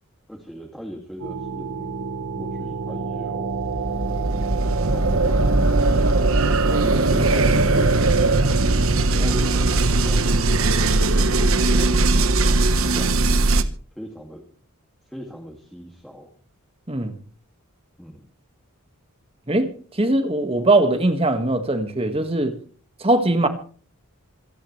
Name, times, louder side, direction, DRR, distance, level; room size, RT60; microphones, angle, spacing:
voice 1, 0.3-1.9 2.4-3.6 4.1-4.2 4.9-6.1 6.6-8.4 9.0-12.1 12.9-13.2 14.0-14.4 15.0-16.3 18.0-18.3, equal, ahead, 2.3 m, -39 dB
sound 1, 1.2-13.6, right 2 dB, 65° right, 1.2 m, -20 dB
voice 2, 19.5-22.5 23.0-23.5, right 2 dB, 25° right, 1.8 m, -21 dB
26.5 x 10.5 x 3.3 m
head